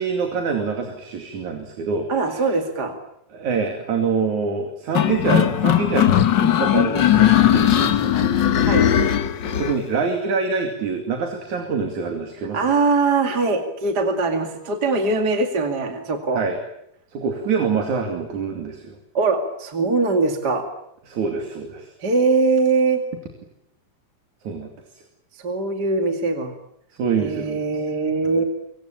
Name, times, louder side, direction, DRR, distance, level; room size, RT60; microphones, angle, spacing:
voice 1, 0.0-2.5 3.3-6.1 6.4-8.3 9.6-12.6 16.4-16.6 17.1-19.0 21.1-21.9 24.4-24.7 27.0-27.6 28.2-28.4, right 5 dB, 65° right, 4 dB, 4.0 m, -25 dB
voice 2, 2.1-2.9 8.7-8.9 12.5-16.4 19.1-20.6 22.0-23.0 25.3-26.5 27.2-28.4, right 3 dB, 35° right, 5 dB, 2.5 m, -21 dB
sound 1, 4.9-9.8, left 11 dB, 70° left, 1.1 m, -18 dB
25.5 x 25.0 x 8.8 m, 0.80 s
omnidirectional pair, 3.8 m